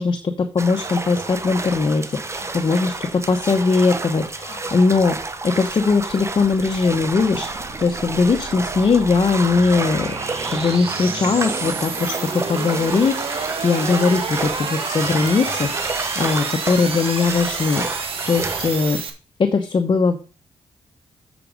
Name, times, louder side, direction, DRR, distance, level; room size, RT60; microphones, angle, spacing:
voice 1, 0.0-10.1 10.5-19.0 19.4-20.2, left 4 dB, 45° left, 6 dB, 1.0 m, -20 dB
sound 1, 0.6-19.0, right 3 dB, 25° right, 1.1 m, -30 dB
sound 2, 5.7-19.1, right 5 dB, 60° right, 1.7 m, -30 dB
7.7 x 6.1 x 5.2 m, 0.34 s
cardioid pair, 85°, 11 cm